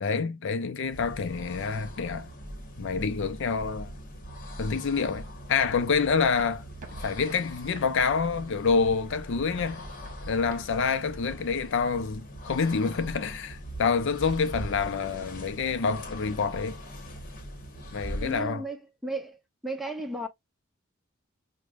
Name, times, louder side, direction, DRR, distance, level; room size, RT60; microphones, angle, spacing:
voice 1, 0.0-2.3 2.8-3.9 4.6-6.6 7.0-9.8 10.3-16.8 17.9-18.6, left 5 dB, 65° left, 0.5 m, -27 dB
sound 1, 0.7-18.6, equal, 45° left, 1.1 m, -41 dB
sound 2, 6.1-11.6, right 1 dB, 40° right, 1.2 m, -48 dB
voice 2, 18.2-19.4 19.6-20.3, right 1 dB, ahead, 0.8 m, -34 dB
4.9 x 2.2 x 2.3 m
head